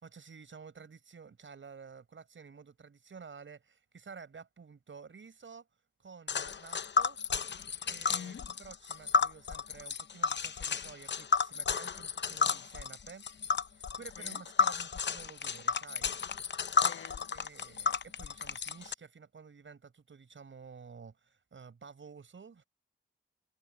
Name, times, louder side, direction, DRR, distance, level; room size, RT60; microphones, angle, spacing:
voice 1, 0.0-5.7 6.0-7.2 7.8-13.3 13.6-16.1 17.3-22.6, right 5 dB, 70° right, 6.1 m, -51 dB
Tick, 6.3-18.9, left 5 dB, 60° left, 0.7 m, -32 dB
voice 2, 8.1-8.6 14.2-14.4 16.7-17.4, left 7 dB, 80° left, 1.4 m, -48 dB
cardioid pair, 55°, 21 cm